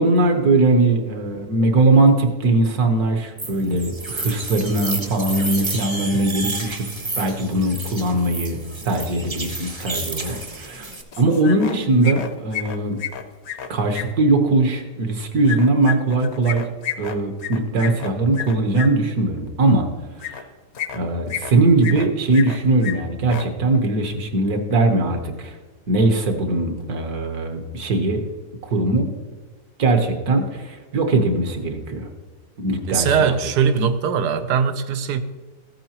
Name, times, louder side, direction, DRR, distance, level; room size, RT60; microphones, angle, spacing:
voice 1, 0.0-6.8 7.2-8.6 8.8-10.9 11.2-13.0 13.7-16.6 17.0-19.9 20.2-20.4 20.9-25.6 25.9-28.2 28.7-29.1 29.8-32.1 32.6-33.3, right 2 dB, 65° right, 1.6 m, -20 dB
sound 1, 3.4-11.0, right 2 dB, 25° right, 0.7 m, -31 dB
sound 2, 11.1-11.8 12.0-14.0 15.4-18.9 20.2-20.4 20.7-21.5 21.8-22.6 22.8-22.9 23.2-23.4, left 9 dB, 55° left, 0.8 m, -30 dB
voice 2, 32.9-35.2, right 6 dB, 85° right, 1.3 m, -20 dB
14.5 x 8.8 x 2.9 m
omnidirectional pair, 1.7 m